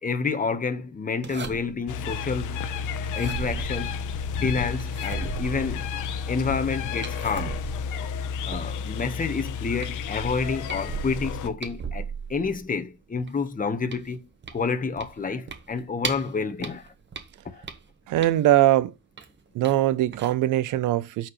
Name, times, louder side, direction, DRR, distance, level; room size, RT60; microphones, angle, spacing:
voice 1, 0.0-2.6 3.1-3.9 4.4-5.9 6.3-7.6 8.4-16.9 17.4-17.6, left 4 dB, 25° left, 1.2 m, -29 dB
sound 1, 1.2-1.9 3.0-4.3 4.8-6.2 7.0-9.0 9.4-9.5 9.8-12.8 13.2-16.3 16.6-18.6 19.2-19.8 20.1-20.3, right 5 dB, 35° right, 1.5 m, -37 dB
sound 2, 1.9-11.5, left 6 dB, 90° left, 0.9 m, -31 dB
voice 2, 18.1-18.9 19.5-21.3, right 14 dB, 85° right, 0.8 m, -21 dB
13.5 x 4.5 x 3.2 m
cardioid pair, 90°, 30 cm